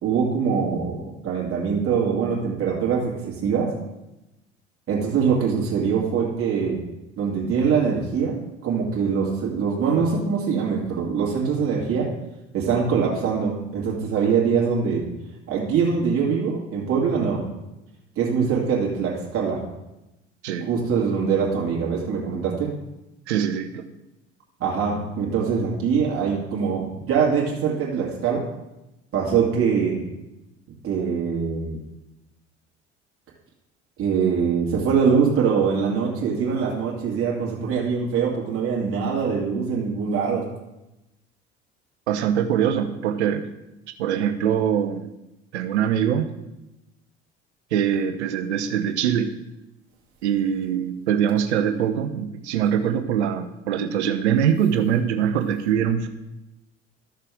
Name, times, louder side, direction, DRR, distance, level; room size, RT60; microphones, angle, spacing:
voice 1, 0.0-3.7 4.9-6.8 7.2-12.1 12.5-15.0 15.5-17.4 18.2-19.6 20.7-22.7 24.6-28.4 29.1-30.0 30.8-31.8 34.0-40.4, right 6 dB, 40° right, -4 dB, 2.3 m, -23 dB
voice 2, 23.3-23.8 42.1-43.5 44.0-45.1 45.5-46.3 47.7-49.3 50.2-56.1, right 8 dB, 70° right, 9 dB, 0.8 m, -23 dB
13.0 x 6.6 x 3.6 m, 0.95 s
figure-of-eight pair, 60°, 35 cm